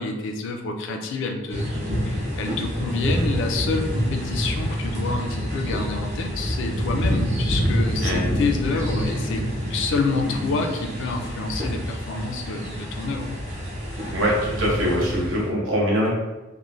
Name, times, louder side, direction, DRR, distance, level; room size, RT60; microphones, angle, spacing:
voice 1, 0.0-1.7 2.0-9.4 9.7-13.3, left 3 dB, 65° left, 4 dB, 0.4 m, -28 dB
sound 1, 1.5-15.5, equal, 35° right, 0.7 m, -27 dB
voice 2, 8.0-8.4 14.1-16.1, equal, 80° right, -4 dB, 0.8 m, -23 dB
3.0 x 2.1 x 2.5 m, 1.1 s
head